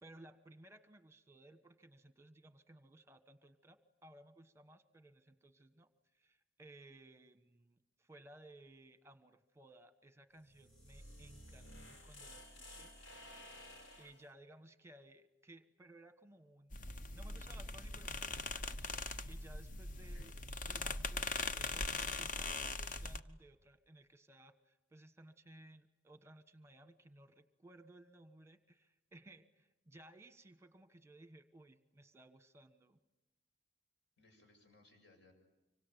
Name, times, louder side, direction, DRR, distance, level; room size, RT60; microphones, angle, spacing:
voice 1, 0.0-5.9 6.1-12.9 14.0-16.7 17.1-20.3 20.6-21.8 22.1-33.0, right 1 dB, 15° right, 11 dB, 1.3 m, -60 dB
sound 1, 10.4-14.3, left 1 dB, 90° left, 5.5 m, -54 dB
sound 2, 16.7-23.2, left 3 dB, 45° left, 1.0 m, -41 dB
voice 2, 20.0-20.3 34.2-35.3, left 2 dB, 65° left, 3 dB, 7.5 m, -66 dB
25.5 x 25.0 x 9.3 m, 0.97 s
head